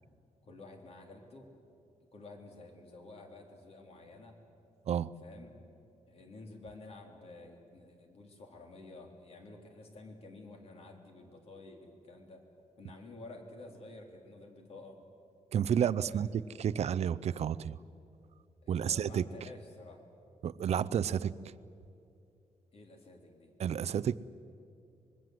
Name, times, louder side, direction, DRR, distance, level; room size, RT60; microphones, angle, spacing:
voice 1, 0.4-1.5 2.1-4.4 5.2-5.6 6.1-12.4 12.8-15.0 16.1-16.3 18.6-20.0 22.7-23.5, left 2 dB, 50° left, 3 dB, 3.3 m, -51 dB
voice 2, 15.5-16.3 16.6-17.7 18.7-19.3 20.4-21.3 23.6-24.2, right 9 dB, 55° right, 18 dB, 0.5 m, -30 dB
25.0 x 21.5 x 7.8 m, 2.7 s
wide cardioid pair, 155°, 13 cm